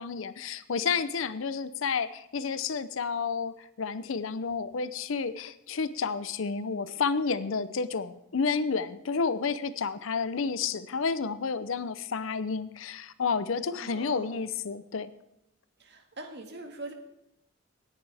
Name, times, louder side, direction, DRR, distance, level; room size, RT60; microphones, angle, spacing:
voice 1, 0.0-15.1, left 5 dB, 75° left, 14 dB, 0.6 m, -30 dB
voice 2, 13.8-14.4 15.8-16.9, right 2 dB, 55° right, 4 dB, 1.8 m, -42 dB
17.0 x 10.5 x 3.5 m, 0.81 s
head